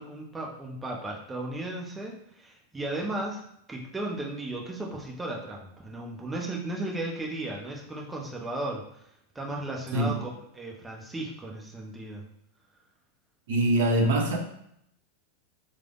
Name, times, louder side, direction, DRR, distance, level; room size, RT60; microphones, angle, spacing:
voice 1, 0.0-3.4 3.7-9.0 9.3-10.3 10.5-12.3, right 2 dB, 10° right, -1 dB, 0.7 m, -35 dB
voice 2, 13.5-14.4, right 1 dB, 55° right, 1 dB, 0.7 m, -23 dB
3.2 x 2.0 x 3.6 m, 0.73 s
figure-of-eight pair, 90°, 0 cm